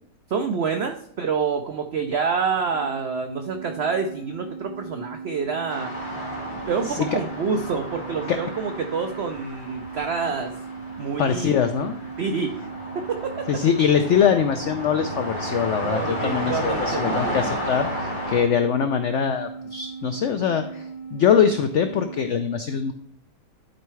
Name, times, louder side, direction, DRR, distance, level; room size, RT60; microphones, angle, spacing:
voice 1, 0.3-5.9 6.7-10.5 11.0-11.5 12.2-12.7 12.9-13.3 15.8-17.3, right 5 dB, 75° right, 6 dB, 0.6 m, -27 dB
sound 1, 2.7-22.3, right 5 dB, 50° left, 1.1 m, -38 dB
sound 2, 5.7-18.4, equal, 30° left, 2.2 m, -33 dB
voice 2, 11.2-12.0 13.5-22.9, left 7 dB, 75° left, 8 dB, 0.6 m, -23 dB
11.5 x 4.6 x 3.2 m, 0.68 s
omnidirectional pair, 1.8 m